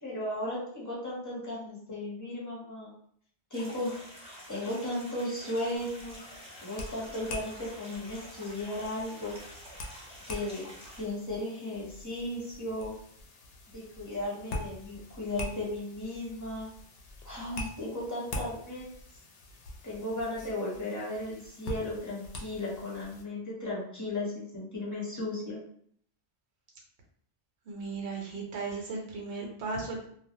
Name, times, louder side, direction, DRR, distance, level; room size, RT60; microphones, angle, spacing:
voice 1, 0.0-2.9 3.5-4.0 4.5-6.2 6.6-9.3 10.3-10.6 11.0-12.9 13.7-16.7 17.2-18.8 19.8-25.6, left 1 dB, 20° left, -6 dB, 0.9 m, -35 dB
sound 1, 3.5-11.0, equal, 10° right, 0.4 m, -48 dB
sound 2, 5.8-23.2, left 2 dB, 70° left, 0.8 m, -44 dB
voice 2, 27.7-30.1, right 3 dB, 90° right, -1 dB, 1.0 m, -36 dB
2.4 x 2.0 x 2.7 m, 0.62 s
omnidirectional pair, 1.1 m